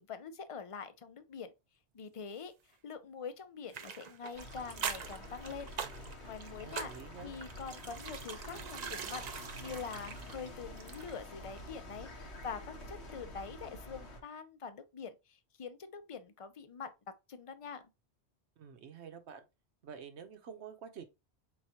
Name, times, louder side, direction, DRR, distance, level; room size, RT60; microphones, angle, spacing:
voice 1, 0.0-1.5 1.9-5.7 6.2-6.9 7.2-9.2 9.6-16.9 17.3-17.9, left 6 dB, 40° left, 0.5 m, -45 dB
sound 1, 3.7-11.3 11.6-11.7, right 6 dB, 50° right, 0.6 m, -43 dB
sound 2, 4.3-14.2, left 1 dB, 85° left, 1.5 m, -48 dB
voice 2, 6.6-7.3 18.6-19.5 19.8-21.0, right 7 dB, 85° right, 1.1 m, -48 dB
4.7 x 4.0 x 2.8 m
omnidirectional pair, 1.1 m